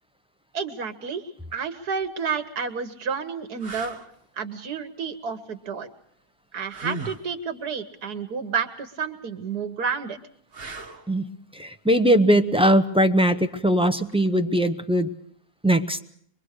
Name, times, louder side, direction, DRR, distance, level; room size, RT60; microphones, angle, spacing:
voice 1, 0.5-4.0 4.4-5.9 6.5-10.2, right 6 dB, 70° right, 9 dB, 1.7 m, -30 dB
sound 1, 2.0-2.2 2.9-3.0 3.6-4.1 6.7-7.3 10.5-11.1 14.1-14.3, right 2 dB, 35° right, 1.6 m, -36 dB
voice 2, 11.5-15.1 15.6-16.0, right 1 dB, 5° right, 8 dB, 0.5 m, -20 dB
24.5 x 22.0 x 6.5 m, 0.64 s
omnidirectional pair, 1.7 m